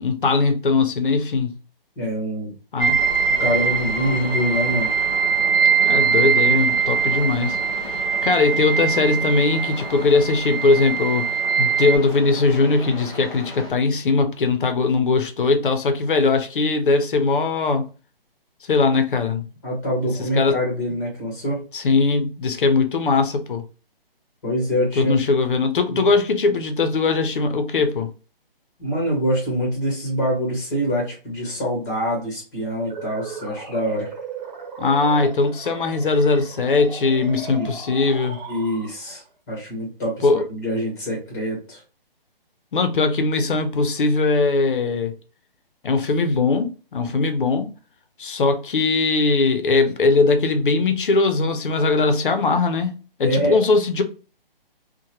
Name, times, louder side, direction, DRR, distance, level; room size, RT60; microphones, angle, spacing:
voice 1, 0.0-1.6 2.7-3.0 5.8-7.6 8.2-11.3 11.6-17.8 18.7-19.5 20.3-20.6 21.7-23.6 25.0-28.1 34.8-38.4 40.2-40.4 42.7-45.1 45.8-47.7 48.2-54.0, left 3 dB, 60° left, 0.6 m, -20 dB
voice 2, 2.0-2.5 3.4-4.9 19.6-21.6 24.4-25.1 25.9-26.0 28.8-34.1 37.6-37.7 38.5-39.2 39.5-41.8 53.2-53.6, equal, 20° left, 1.1 m, -25 dB
sound 1, 2.8-12.0, right 7 dB, 70° right, 0.8 m, -22 dB
sound 2, 2.9-13.7, left 1 dB, ahead, 0.6 m, -36 dB
sound 3, 32.7-39.2, right 4 dB, 45° right, 1.1 m, -37 dB
2.9 x 2.2 x 2.8 m
hypercardioid pair, 165°, 29 cm